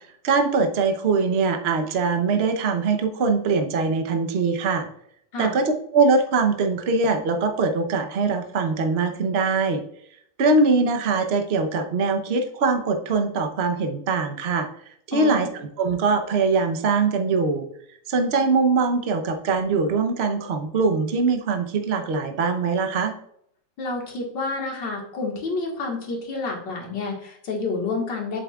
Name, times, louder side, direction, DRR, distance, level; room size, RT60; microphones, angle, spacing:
voice 1, 0.2-4.9 5.4-9.8 10.4-14.7 15.1-17.7 18.1-23.1, right 4 dB, 45° right, 6 dB, 0.9 m, -22 dB
voice 2, 15.1-15.5 23.8-28.4, left 3 dB, 80° left, 0 dB, 2.4 m, -29 dB
7.9 x 7.4 x 2.4 m, 0.69 s
omnidirectional pair, 1.9 m